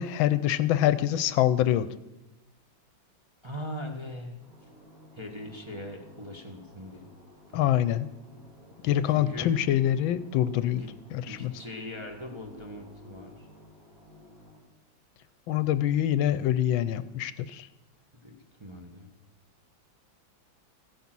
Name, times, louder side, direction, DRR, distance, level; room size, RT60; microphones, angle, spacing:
voice 1, 0.0-1.9 7.5-8.1 8.8-10.8 11.1-11.5 15.5-17.7, left 12 dB, 80° left, 15 dB, 1.4 m, -25 dB
voice 2, 3.4-4.4 5.1-7.0 7.5-7.8 9.1-9.5 10.8-10.9 11.3-13.5 18.2-19.1, left 1 dB, 15° right, 1 dB, 1.2 m, -40 dB
sound 1, 4.4-14.6, left 1 dB, 45° right, 3.1 m, -53 dB
15.0 x 9.4 x 6.1 m, 0.97 s
omnidirectional pair, 2.2 m